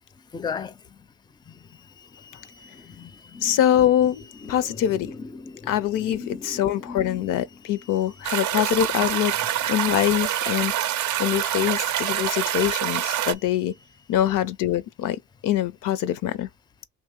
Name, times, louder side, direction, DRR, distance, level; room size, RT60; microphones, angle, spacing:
voice 1, 0.3-0.7 1.5-1.6 2.2-3.6 4.4-7.3, left 5 dB, 15° left, 0.4 m, -37 dB
voice 2, 3.4-4.2 4.5-5.1 5.7-9.3 9.7-10.7 11.2-13.7 14.1-15.2 15.4-16.5, left 11 dB, 80° left, 0.5 m, -23 dB
sound 1, 8.2-13.3, right 12 dB, 65° right, 0.5 m, -26 dB
2.8 x 2.7 x 3.6 m
cardioid pair, 75°, 31 cm